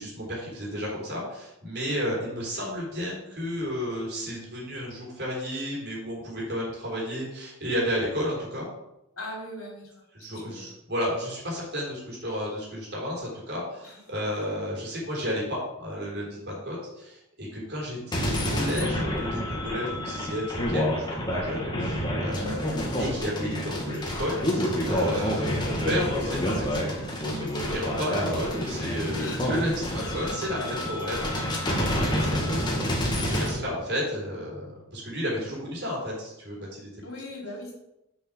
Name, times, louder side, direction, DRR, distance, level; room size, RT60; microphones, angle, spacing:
voice 1, 0.0-8.7 10.1-36.9, equal, 50° right, -5 dB, 3.9 m, -32 dB
voice 2, 9.2-9.9 10.3-10.7 13.8-14.0 14.4-14.5 22.4-22.6 28.9-29.5 30.6-30.7 37.0-37.7, left 1 dB, 65° left, -1 dB, 3.3 m, -40 dB
sound 1, 18.1-33.5, equal, 20° left, 1.7 m, -28 dB
7.0 x 6.3 x 6.2 m, 0.86 s
head